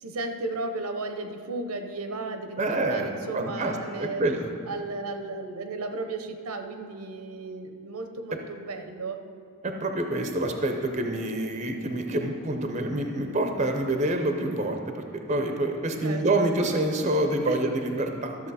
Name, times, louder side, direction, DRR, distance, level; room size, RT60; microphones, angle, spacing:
voice 1, 0.0-4.2 4.7-9.2 16.0-16.5 17.5-17.6, right 3 dB, 80° right, 6 dB, 0.8 m, -34 dB
voice 2, 2.6-4.6 9.6-18.4, right 1 dB, 30° right, 4 dB, 0.7 m, -27 dB
13.5 x 7.0 x 4.2 m, 2.3 s
head